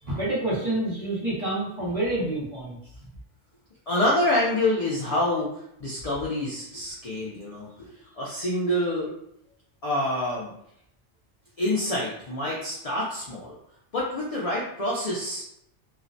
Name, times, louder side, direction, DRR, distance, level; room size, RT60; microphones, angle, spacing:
voice 1, 0.0-2.8, right 1 dB, 35° right, -7 dB, 0.7 m, -28 dB
voice 2, 3.9-9.1 9.8-10.5 11.6-13.5 13.9-15.4, left 1 dB, 65° left, -5 dB, 0.3 m, -27 dB
2.3 x 2.1 x 2.5 m, 0.77 s
omnidirectional pair, 1.2 m